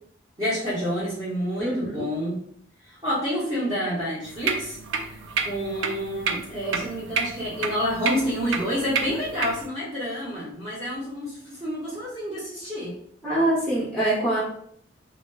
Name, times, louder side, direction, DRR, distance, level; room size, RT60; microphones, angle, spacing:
voice 1, 0.4-2.4 2.9-4.8 5.4-12.9, equal, 25° right, -12 dB, 0.8 m, -28 dB
voice 2, 1.6-2.0 13.2-14.4, right 1 dB, 5° left, -8 dB, 0.5 m, -24 dB
sound 1, 4.2-9.7, right 5 dB, 75° right, 0.3 m, -30 dB
2.2 x 2.0 x 3.2 m, 0.67 s
head